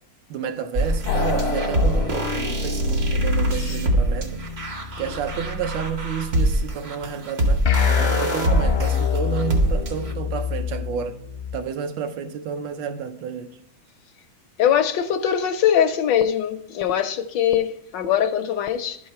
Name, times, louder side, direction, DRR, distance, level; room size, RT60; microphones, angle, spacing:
voice 1, 0.3-4.4 5.0-11.2 11.5-13.5, right 7 dB, 75° right, 1.4 m, -30 dB
sound 1, 0.7-10.1, right 1 dB, 50° right, 0.8 m, -24 dB
sound 2, 1.1-6.4 7.6-11.6, left 4 dB, 55° left, 0.7 m, -26 dB
voice 2, 14.6-19.0, left 9 dB, 75° left, 1.2 m, -22 dB
11.5 x 4.7 x 4.2 m
omnidirectional pair, 2.2 m